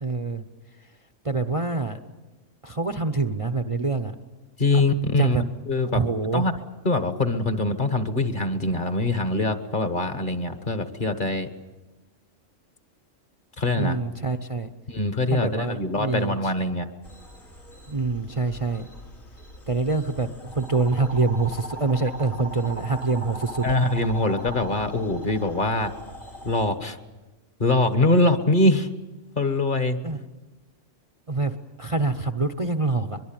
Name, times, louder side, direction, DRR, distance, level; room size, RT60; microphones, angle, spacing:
voice 1, 0.0-0.4 1.2-2.0 2.6-4.1 5.2-5.4 5.9-6.5 13.8-14.7 15.3-16.5 17.9-18.9 19.7-23.7 30.0-30.2 31.3-33.2, right 3 dB, 30° right, 8 dB, 0.8 m, -25 dB
voice 2, 4.6-6.0 6.3-6.5 6.8-11.5 13.6-14.0 14.9-16.9 23.6-25.9 26.4-27.0 27.6-28.9 29.4-30.0, left 2 dB, 40° left, 9 dB, 1.5 m, -23 dB
sound 1, 17.0-26.7, right 1 dB, 80° left, 4.1 m, -40 dB
23.0 x 23.0 x 8.9 m, 1.1 s
omnidirectional pair, 1.4 m